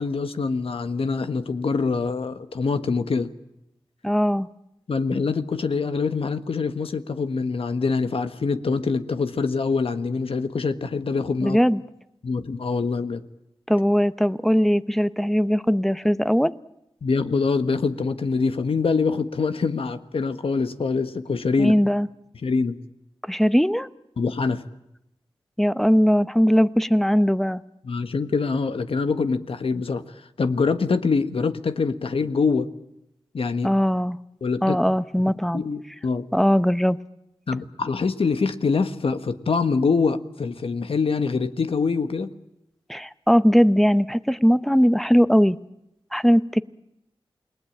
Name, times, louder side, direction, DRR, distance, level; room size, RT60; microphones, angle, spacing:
voice 1, 0.0-3.3 4.9-11.6 12.2-13.2 17.0-21.7 22.4-22.8 24.2-24.6 27.8-30.0 30.4-32.7 33.3-33.7 34.4-34.8 35.5-36.3 37.5-42.3, left 4 dB, 75° left, 10 dB, 1.5 m, -24 dB
voice 2, 4.0-4.5 11.4-11.8 13.7-16.5 21.6-22.1 23.3-23.9 25.6-27.6 33.6-34.2 34.6-35.6 36.3-37.0 42.9-45.6 46.1-46.6, equal, 5° left, 14 dB, 0.9 m, -19 dB
28.5 x 20.0 x 8.7 m, 0.86 s
wide cardioid pair, 75°, 10 cm